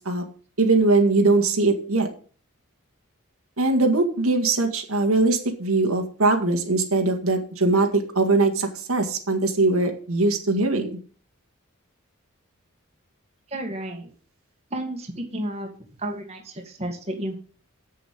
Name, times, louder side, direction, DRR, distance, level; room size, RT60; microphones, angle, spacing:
voice 1, 0.6-2.1 3.6-11.0, right 3 dB, 80° right, 4 dB, 2.0 m, -21 dB
voice 2, 13.5-14.1 14.7-15.7 16.0-17.3, right 1 dB, 30° right, 2 dB, 1.9 m, -31 dB
7.8 x 7.1 x 7.7 m, 0.41 s
head